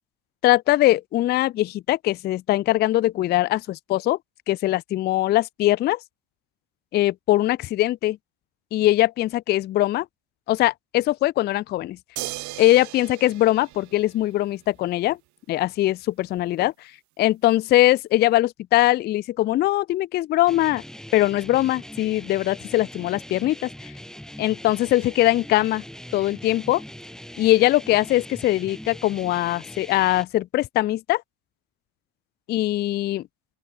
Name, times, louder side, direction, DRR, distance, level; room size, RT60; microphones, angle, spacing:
voice 1, 0.4-4.2 4.5-6.0 6.9-8.2 8.7-10.1 10.5-12.0 12.6-15.2 15.5-16.7 17.2-20.8 21.1-23.7 24.4-25.8 26.1-26.8 27.4-31.2 32.5-33.2, left 15 dB, 25° left, 0.4 m, -21 dB
sound 1, 12.2-14.6 16.4-16.5, right 18 dB, 45° right, 0.9 m, -37 dB
sound 2, 20.5-30.2, equal, ahead, 2.4 m, -41 dB
open air
cardioid pair, 160°, 41 cm